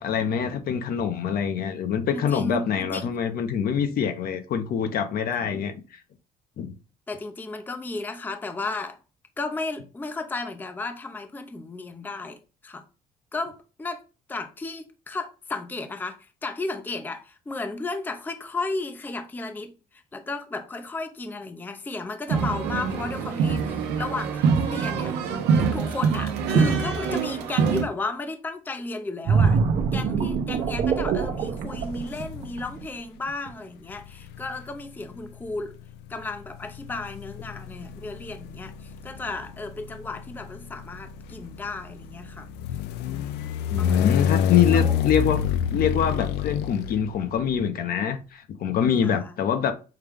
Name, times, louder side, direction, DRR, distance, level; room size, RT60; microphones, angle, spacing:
voice 1, 0.0-5.8 6.6-6.7 43.7-45.4 45.7-49.7, left 8 dB, 60° left, 0.8 m, -25 dB
voice 2, 2.1-3.2 7.1-9.0 9.4-12.8 13.3-14.0 14.3-29.6 29.9-35.8 36.1-42.5 43.0-43.4 43.8-44.3 44.7-45.0 49.0-49.3, left 3 dB, 10° left, 0.5 m, -34 dB
sound 1, 22.3-27.8, right 6 dB, 90° right, 0.8 m, -24 dB
sound 2, 29.3-32.8 33.3-33.5, right 5 dB, 55° right, 0.8 m, -24 dB
sound 3, 32.1-32.8 33.9-47.6, left 8 dB, 80° left, 0.4 m, -28 dB
5.7 x 2.3 x 3.4 m
cardioid pair, 110°, 17 cm